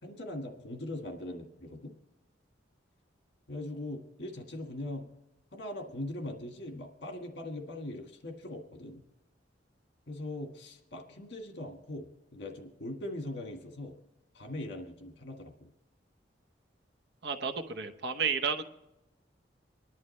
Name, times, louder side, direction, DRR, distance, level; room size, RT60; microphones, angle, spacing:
voice 1, 0.0-1.9 3.5-5.1 5.5-9.0 10.1-14.0 14.3-15.7, left 1 dB, 65° left, 4 dB, 1.6 m, -41 dB
voice 2, 17.2-18.6, right 6 dB, 65° right, 8 dB, 0.9 m, -32 dB
25.5 x 11.0 x 3.2 m, 0.92 s
head